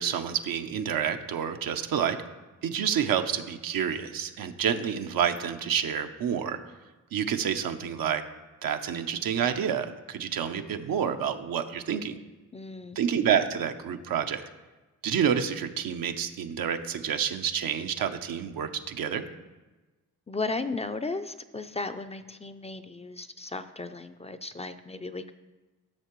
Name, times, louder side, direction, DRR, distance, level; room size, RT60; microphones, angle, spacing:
voice 1, 0.0-2.2 2.6-6.6 7.1-8.2 8.6-12.2 13.0-14.4 15.0-19.2, right 8 dB, 85° right, 7 dB, 0.7 m, -28 dB
voice 2, 12.5-13.0 20.3-25.3, left 3 dB, 20° left, 9 dB, 0.4 m, -35 dB
12.0 x 6.5 x 3.0 m, 1.2 s
cardioid pair, 70°, 34 cm